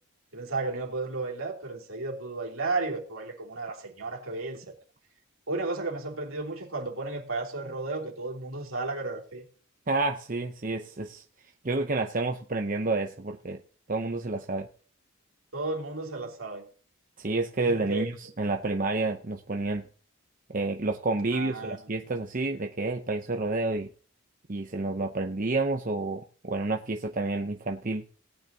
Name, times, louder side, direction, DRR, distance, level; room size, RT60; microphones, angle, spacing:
voice 1, 0.3-4.7 5.5-9.4 15.5-16.7 17.6-18.0 21.3-21.8, right 3 dB, 70° right, 3.2 m, -33 dB
voice 2, 9.9-11.2 11.6-13.6 13.9-14.7 17.2-19.8 20.5-23.9 24.5-28.0, right 3 dB, 40° right, 0.8 m, -29 dB
18.5 x 9.4 x 2.9 m
head